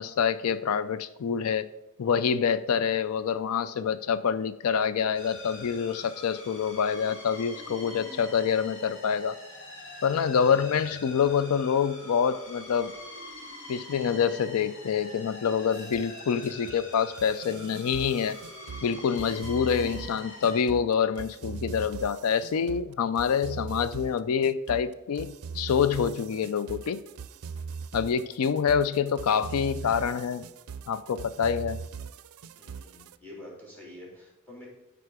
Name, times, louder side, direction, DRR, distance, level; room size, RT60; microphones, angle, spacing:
voice 1, 0.0-1.7 2.0-9.4 10.0-12.9 13.7-18.4 18.8-27.0 27.9-30.4 30.9-31.8, left 7 dB, 90° left, 14 dB, 0.4 m, -26 dB
sound 1, 5.1-20.6, left 1 dB, 60° left, 2.2 m, -44 dB
sound 2, 15.7-33.2, right 5 dB, 90° right, 0.4 m, -40 dB
voice 2, 32.6-34.7, left 1 dB, 10° left, -3 dB, 3.4 m, -47 dB
12.5 x 4.9 x 4.9 m, 0.94 s
head